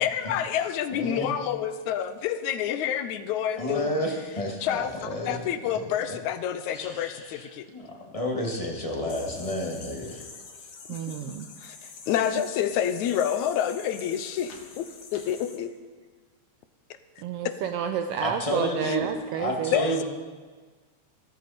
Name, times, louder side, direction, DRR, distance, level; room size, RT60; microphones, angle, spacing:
voice 1, 0.0-4.0 4.6-7.7 11.6-14.9 15.1-15.7 18.8-19.0 19.7-20.0, left 9 dB, 85° left, 11 dB, 2.1 m, -28 dB
voice 2, 3.6-5.4 6.0-6.1 6.7-10.2 18.2-19.1 19.4-20.0, equal, 15° left, 0 dB, 1.5 m, -30 dB
sound 1, 9.1-15.6, left 4 dB, 65° left, 2.8 m, -45 dB
voice 3, 10.9-11.5 17.2-19.7, right 8 dB, 80° right, 7 dB, 1.4 m, -30 dB
15.5 x 14.0 x 4.3 m, 1.4 s
omnidirectional pair, 3.3 m